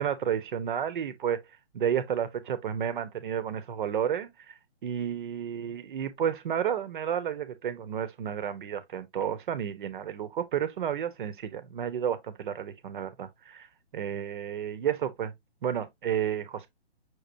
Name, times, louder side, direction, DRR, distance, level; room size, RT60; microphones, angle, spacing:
voice 1, 0.0-1.4 1.7-4.3 4.8-13.7 13.9-15.3 15.6-16.7, right 9 dB, 50° right, 1.0 m, -31 dB
6.2 x 3.2 x 2.6 m
hypercardioid pair, 145°, 33 cm